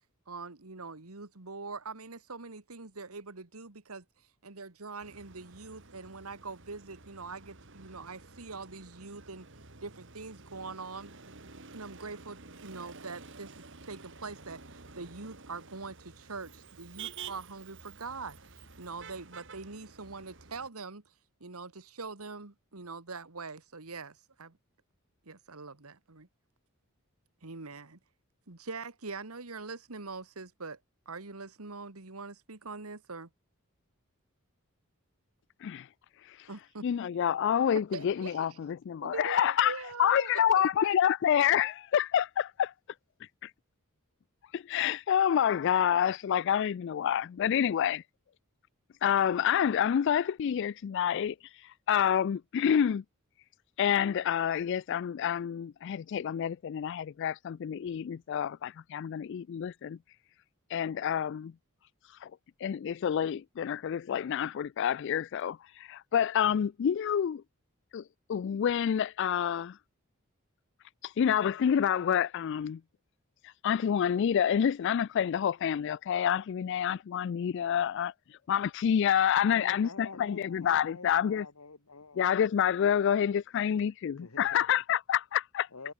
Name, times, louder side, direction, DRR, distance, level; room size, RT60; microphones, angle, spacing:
voice 1, 0.3-4.0 4.4-9.5 9.8-11.1 11.7-21.1 21.4-24.5 25.3-26.3 27.4-28.0 28.5-30.8 31.1-33.3 36.5-36.9 37.9-38.6 39.0-40.7, right 4 dB, 90° right, 1.9 m, -43 dB
Motor vehicle (road), 5.0-20.7, right 5 dB, 60° right, 3.2 m, -50 dB
voice 2, 36.8-42.7 43.4-43.5 44.5-48.0 49.0-51.3 51.9-53.0 53.8-60.0 60.7-61.5 62.2-62.3 62.6-67.4 67.9-68.0 68.3-69.8 71.0-72.8 73.6-78.1 78.5-81.5 82.2-85.7, left 9 dB, 55° left, 0.3 m, -28 dB
voice 3, 79.5-82.3 84.1-84.8 85.7-85.9, left 3 dB, 90° left, 1.8 m, -47 dB
head